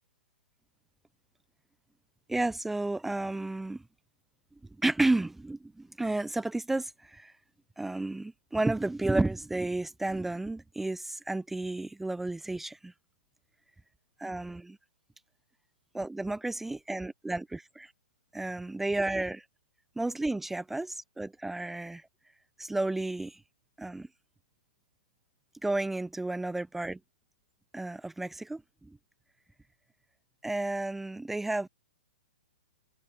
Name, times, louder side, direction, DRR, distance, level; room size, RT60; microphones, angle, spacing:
voice 1, 2.3-3.8 4.8-7.3 7.8-12.9 14.2-14.8 15.9-17.9 18.3-19.4 20.0-22.0 22.6-23.4 23.8-24.1 25.6-27.0 27.7-29.0 30.4-31.7, right 2 dB, 5° right, 0.4 m, -32 dB
open air
hypercardioid pair, 145°, 5 cm